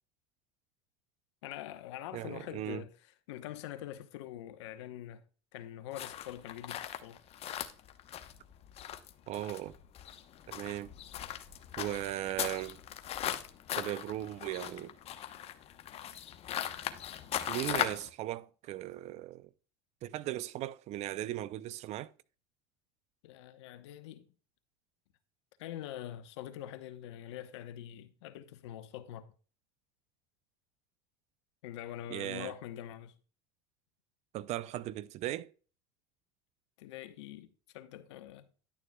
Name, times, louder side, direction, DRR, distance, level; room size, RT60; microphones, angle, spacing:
voice 1, 1.4-2.9 3.3-5.2 5.5-7.2 23.2-24.3 25.6-29.3 31.6-33.2 36.8-38.5, left 12 dB, 80° left, 0.9 m, -44 dB
voice 2, 2.1-2.8 9.3-9.8 10.5-10.9 11.8-12.8 13.8-14.9 17.5-19.5 20.0-22.1 32.1-32.5 34.3-35.5, right 14 dB, 50° right, 0.5 m, -37 dB
sound 1, 5.9-18.1, left 11 dB, 45° left, 0.9 m, -39 dB
11.0 x 6.8 x 2.3 m
supercardioid pair, 95°, 15 cm